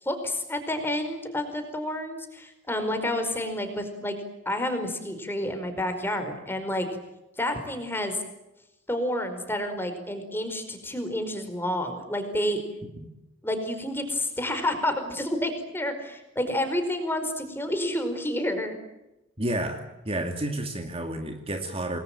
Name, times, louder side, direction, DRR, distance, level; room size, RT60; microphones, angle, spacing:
voice 1, 0.0-4.1 4.4-6.9 7.4-8.2 8.9-12.6 13.4-18.8, left 1 dB, 10° left, 7 dB, 4.8 m, -29 dB
voice 2, 19.4-22.0, right 1 dB, 30° right, 5 dB, 2.3 m, -31 dB
28.0 x 21.0 x 9.0 m, 0.95 s
head